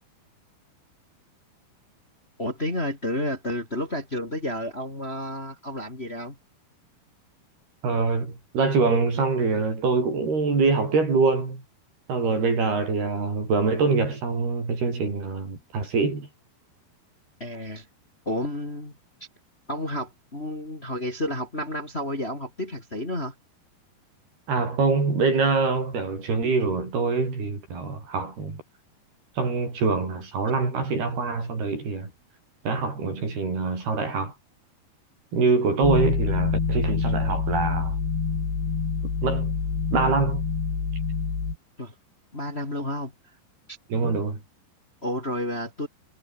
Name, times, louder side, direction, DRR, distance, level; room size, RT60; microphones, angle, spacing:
voice 1, 2.4-6.3 17.4-17.8 18.2-18.9 19.7-23.3 41.8-41.9 42.3-43.1 43.7-43.8 45.0-45.9, left 1 dB, 15° left, 3.2 m, -31 dB
voice 2, 7.8-11.6 12.1-16.3 24.5-28.6 29.4-32.1 32.6-34.3 35.3-38.0 39.2-39.5 39.9-40.5 43.9-44.4, right 4 dB, 65° right, 9.7 m, -24 dB
sound 1, 35.8-41.6, left 5 dB, 80° left, 8.8 m, -26 dB
omnidirectional pair, 4.9 m